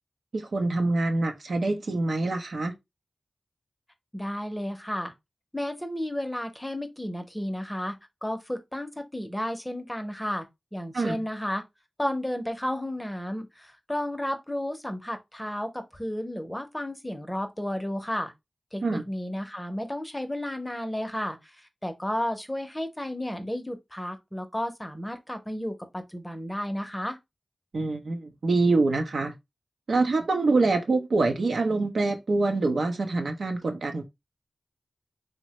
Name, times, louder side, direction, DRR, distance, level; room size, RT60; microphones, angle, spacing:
voice 1, 0.3-2.7 10.9-11.2 18.8-19.0 27.7-29.3 29.9-34.0, right 3 dB, 80° right, 0.5 m, -25 dB
voice 2, 4.1-5.1 5.5-11.6 12.0-18.3 18.7-27.2, left 1 dB, 10° left, 0.6 m, -32 dB
3.1 x 2.1 x 2.8 m
cardioid pair, 40°, 0 cm